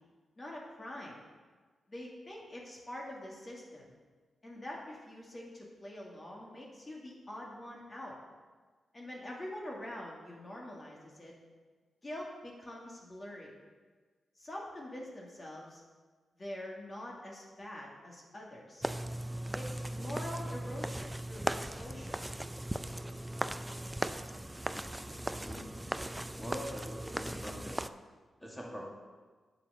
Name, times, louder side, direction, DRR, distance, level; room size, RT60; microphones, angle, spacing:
voice 1, 0.4-1.2 1.9-3.9 4.4-8.2 8.9-11.3 12.0-13.5 14.4-15.8 16.3-18.9 19.5-22.2, left 1 dB, 40° left, -2 dB, 2.3 m, -45 dB
sound 1, 18.8-27.9, right 1 dB, 10° right, 0.5 m, -38 dB
voice 2, 25.2-25.7 26.4-27.8 28.4-28.8, equal, 10° left, -2 dB, 2.2 m, -44 dB
8.1 x 5.8 x 6.4 m, 1.4 s
supercardioid pair, 40°, 0 cm